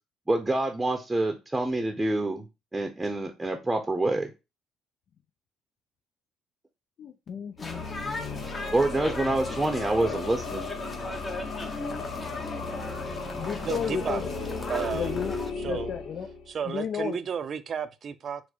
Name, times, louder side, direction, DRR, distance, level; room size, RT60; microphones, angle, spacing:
voice 1, 0.3-2.5 2.7-4.3 8.7-10.7, right 2 dB, 15° right, 0.7 m, -27 dB
voice 2, 7.0-8.4 11.9-12.1 13.4-14.2 14.9-15.3 15.7-16.3 16.7-17.2, left 7 dB, 55° left, 0.4 m, -33 dB
sound 1, 7.5-16.6, left 4 dB, 75° left, 0.9 m, -36 dB
sound 2, 7.6-15.5, left 2 dB, 30° left, 0.9 m, -37 dB
voice 3, 13.6-14.2 14.7-15.2 15.6-15.9 16.5-18.4, right 7 dB, 55° right, 0.4 m, -32 dB
4.3 x 2.1 x 4.2 m
supercardioid pair, 65°, 0 cm